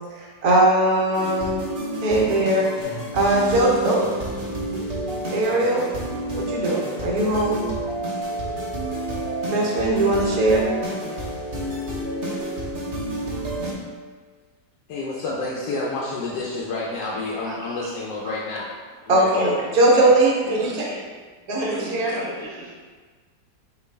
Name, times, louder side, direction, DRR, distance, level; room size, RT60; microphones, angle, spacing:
voice 1, 0.1-1.6 2.0-4.0 5.3-5.8 6.3-7.6 9.5-10.7 17.4-17.6 18.2-18.3 19.1-20.9 21.5-22.2, right 1 dB, 65° right, -3 dB, 1.2 m, -20 dB
sound 1, 1.1-13.7, right 1 dB, 40° right, 0.8 m, -29 dB
voice 2, 14.9-18.7 19.1-19.3, left 3 dB, 90° left, -4 dB, 1.2 m, -29 dB
voice 3, 19.3-19.6 19.9-20.2 20.4-21.0 21.6-22.7, right 1 dB, 15° left, -9 dB, 0.4 m, -34 dB
4.5 x 2.6 x 3.2 m, 1.4 s
omnidirectional pair, 1.8 m